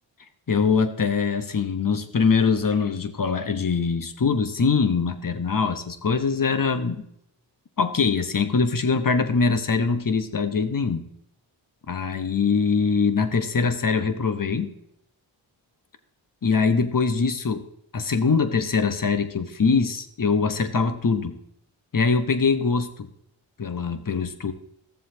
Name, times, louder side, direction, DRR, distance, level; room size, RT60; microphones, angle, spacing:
voice 1, 0.5-7.0 7.8-11.0 11.9-14.7 16.4-17.6 17.9-21.4 21.9-23.1 23.6-24.5, left 5 dB, 45° left, 9 dB, 1.1 m, -23 dB
14.0 x 7.3 x 2.9 m, 0.74 s
cardioid pair, 40°, 47 cm